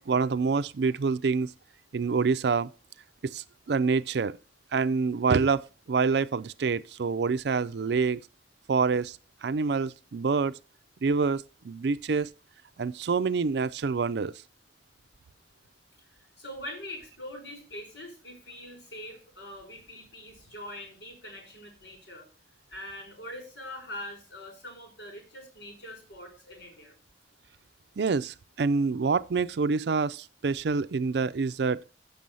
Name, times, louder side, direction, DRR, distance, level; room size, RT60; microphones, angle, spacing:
voice 1, 0.0-1.5 1.9-2.7 3.2-4.4 4.7-8.2 8.7-9.2 9.4-10.5 11.0-12.3 12.8-14.3 28.0-31.8, right 4 dB, 70° right, 0.4 m, -26 dB
voice 2, 16.0-22.3 22.7-27.0, left 1 dB, 85° left, 5.6 m, -43 dB
7.6 x 6.9 x 5.4 m
head